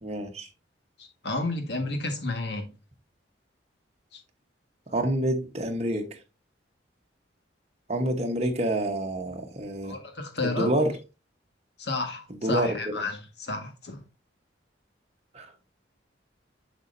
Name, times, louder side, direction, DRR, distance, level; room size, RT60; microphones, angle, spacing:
voice 1, 0.0-0.5 4.9-6.1 7.9-10.0 10.4-10.9 12.4-13.0 15.3-15.5, right 1 dB, 35° right, 1.1 m, -27 dB
voice 2, 1.0-2.7 4.1-4.2 9.8-10.7 11.8-14.0, left 2 dB, 60° left, 1.6 m, -31 dB
7.4 x 6.2 x 2.6 m
head